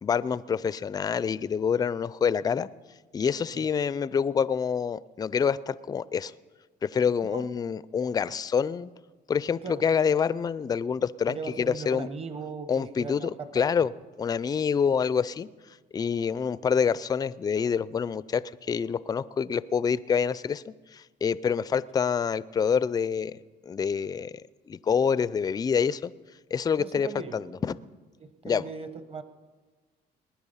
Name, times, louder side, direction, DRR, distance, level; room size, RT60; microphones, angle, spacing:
voice 1, 0.0-2.7 3.1-6.3 6.8-8.9 9.3-12.1 12.7-13.2 13.5-13.9 14.2-15.5 15.9-18.4 18.7-20.6 20.9-23.4 23.7-24.3 24.7-26.1 26.5-27.1 27.3-27.4 28.4-28.6, left 6 dB, 25° left, 18 dB, 0.4 m, -26 dB
voice 2, 11.3-13.7 14.8-14.9 26.8-27.5 28.2-29.2, right 4 dB, 35° right, 11 dB, 1.2 m, -39 dB
20.0 x 10.0 x 5.6 m, 1.3 s
cardioid pair, 110°, 17 cm